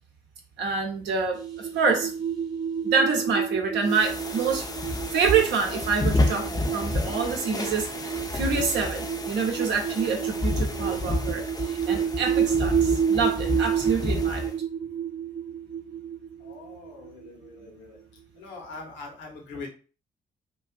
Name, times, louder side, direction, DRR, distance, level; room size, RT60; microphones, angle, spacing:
voice 1, 0.6-2.1 2.8-4.7 5.1-14.4, right 5 dB, 60° right, 0.7 m, -27 dB
sound 1, 1.3-17.6, right 8 dB, 20° right, 0.8 m, -30 dB
sound 2, 3.9-14.6, left 2 dB, 20° left, 0.5 m, -30 dB
voice 2, 16.4-18.0 18.4-19.7, left 3 dB, 65° left, 0.8 m, -42 dB
2.4 x 2.2 x 2.3 m
hypercardioid pair, 45°, 21 cm